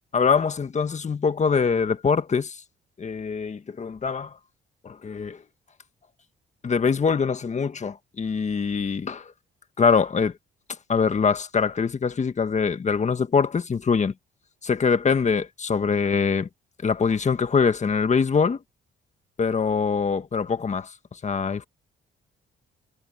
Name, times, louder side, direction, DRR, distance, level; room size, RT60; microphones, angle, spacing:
voice 1, 0.1-2.6 3.0-4.3 4.8-5.4 6.6-9.3 9.8-10.3 10.9-14.1 14.6-16.5 16.8-18.6 19.4-21.6, left 5 dB, 35° left, 1.7 m, -23 dB
cardioid pair, 90°, 20 cm